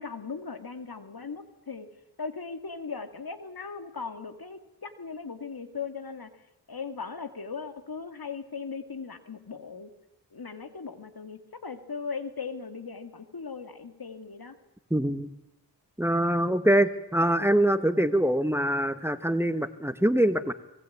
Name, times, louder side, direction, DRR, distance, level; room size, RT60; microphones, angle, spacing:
voice 1, 0.0-1.9 2.2-6.3 6.7-9.9 10.3-14.6, left 5 dB, 60° left, 9 dB, 2.4 m, -38 dB
voice 2, 14.9-15.3 16.0-20.5, right 1 dB, 5° right, 12 dB, 1.5 m, -24 dB
25.0 x 20.5 x 8.6 m, 0.89 s
cardioid pair, 50°, 41 cm